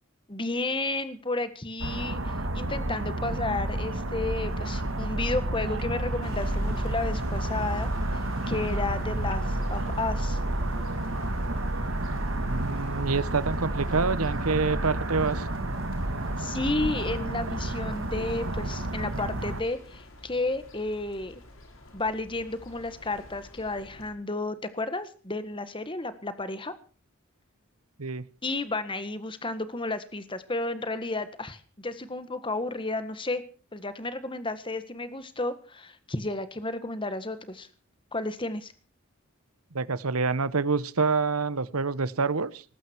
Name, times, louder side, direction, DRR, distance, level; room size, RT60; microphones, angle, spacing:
voice 1, 0.3-7.9 8.5-10.4 16.4-21.4 21.9-26.7 28.4-33.4 33.7-37.7 38.1-38.7, left 2 dB, 25° left, 1.6 m, -32 dB
sound 1, 1.8-19.6, right 1 dB, 60° right, 1.9 m, -30 dB
sound 2, 6.2-24.1, left 1 dB, 65° left, 4.7 m, -45 dB
voice 2, 12.4-15.5 28.0-28.2 39.7-42.6, right 4 dB, 85° right, 1.1 m, -27 dB
19.5 x 15.0 x 4.6 m
head